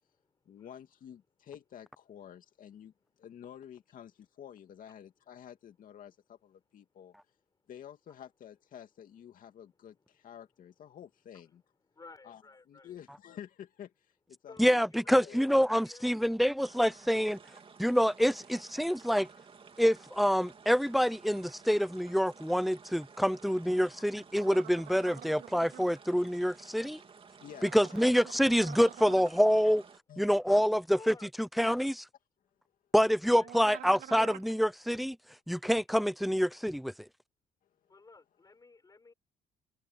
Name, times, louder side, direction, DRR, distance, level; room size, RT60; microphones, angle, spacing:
voice 1, 0.5-7.1 7.7-11.6 12.2-14.9 15.2-15.4 27.4-27.7 29.6-29.7 30.1-30.2, left 9 dB, 55° left, 2.4 m, -50 dB
voice 2, 11.9-13.0 14.5-15.5 15.7-16.2 16.8-17.0 30.5-30.6 30.9-31.3 31.5-31.7 33.2-33.8 37.9-39.1, left 3 dB, 20° left, 4.8 m, -53 dB
voice 3, 14.6-17.4 17.8-19.3 19.8-27.0 27.6-29.8 30.2-32.0 32.9-35.2 35.5-36.9, equal, ahead, 0.5 m, -27 dB
sound 1, 16.6-30.0, right 5 dB, 30° right, 3.2 m, -54 dB
sound 2, 24.4-25.9 27.5-29.3 33.4-34.5, right 11 dB, 65° right, 3.0 m, -48 dB
cardioid pair, 110°, 17 cm